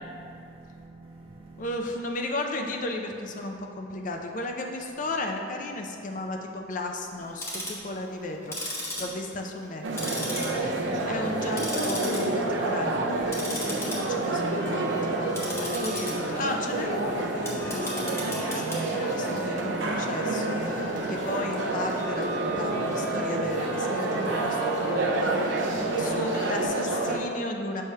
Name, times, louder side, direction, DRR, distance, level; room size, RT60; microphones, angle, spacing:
voice 1, 0.0-1.8 7.2-7.3 7.6-7.7 8.9-9.2 10.1-11.6 15.3-15.8 17.6-17.7 20.6-21.3 24.8-25.0 25.7-26.3, right 2 dB, 30° right, -3 dB, 0.4 m, -45 dB
voice 2, 1.6-27.8, left 2 dB, 45° left, 3 dB, 0.6 m, -35 dB
Tick-tock, 7.2-7.8 8.4-9.7 10.0-10.9 11.2-12.2 12.6-12.8 13.3-26.7, equal, 15° left, 1.0 m, -36 dB
sound 1, 9.8-27.2, right 2 dB, 85° right, 0.6 m, -29 dB
6.5 x 3.2 x 5.5 m, 2.5 s
head